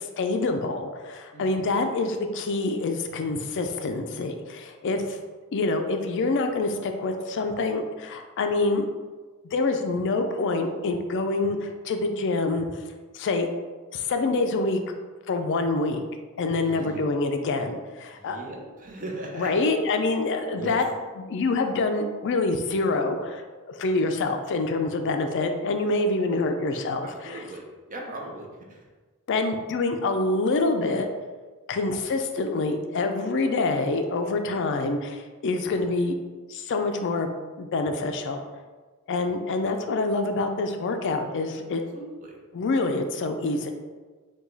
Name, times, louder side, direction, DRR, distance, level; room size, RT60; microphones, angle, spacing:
voice 1, 0.0-5.2 5.5-8.9 9.4-12.7 13.1-13.5 13.9-14.8 15.3-16.0 16.4-18.4 19.4-20.9 21.2-23.4 23.8-27.4 29.3-31.1 31.7-36.2 36.5-37.3 37.6-38.5 39.1-41.8 42.5-43.7, left 3 dB, 55° left, 6 dB, 0.4 m, -26 dB
voice 2, 1.3-1.7 16.6-17.0 18.1-19.5 20.6-20.8 26.3-26.4 27.0-28.8 41.9-42.4, right 2 dB, 35° right, 0 dB, 0.7 m, -38 dB
4.8 x 2.3 x 3.9 m, 1.3 s
head